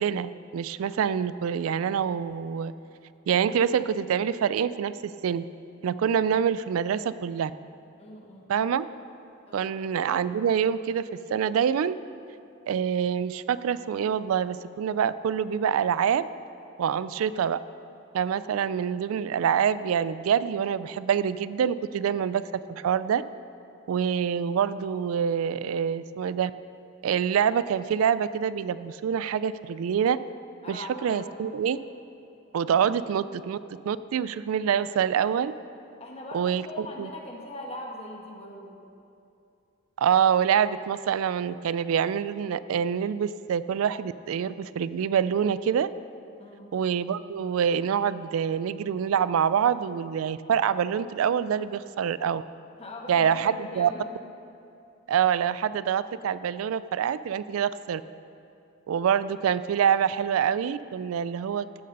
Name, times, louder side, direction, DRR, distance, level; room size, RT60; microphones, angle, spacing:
voice 1, 0.0-2.7 3.3-5.4 5.8-7.5 8.5-8.9 9.5-11.9 12.7-16.2 16.8-17.6 18.1-22.4 22.7-23.2 23.9-26.5 27.0-30.2 30.7-31.8 32.5-33.6 33.9-35.5 36.3-37.1 40.0-45.9 46.7-52.4 53.1-53.9 55.1-58.0 58.9-61.8, right 8 dB, 85° right, 16 dB, 0.3 m, -26 dB
voice 2, 8.0-8.5 9.5-9.7 30.6-31.3 36.0-38.8 46.4-46.7 52.8-54.1, left 1 dB, 30° left, 0 dB, 1.5 m, -41 dB
15.0 x 6.7 x 5.3 m, 2.7 s
head